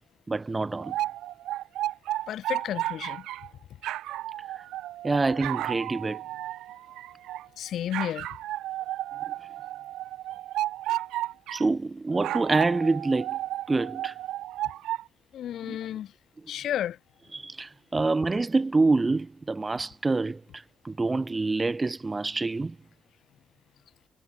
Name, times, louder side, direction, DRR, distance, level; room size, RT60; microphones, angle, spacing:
voice 1, 0.3-1.0 5.0-6.2 11.5-13.4 13.7-14.1 15.7-15.8 17.3-22.8, right 3 dB, 25° right, 4.5 m, -26 dB
sound 1, 0.8-3.5 3.8-7.5 7.9-11.7 12.1-15.0, right 14 dB, 85° right, 4.1 m, -33 dB
voice 2, 2.3-3.3 7.6-8.3 15.3-16.1 16.5-17.0, left 11 dB, 70° left, 5.7 m, -32 dB
cardioid pair, 90°, 0 cm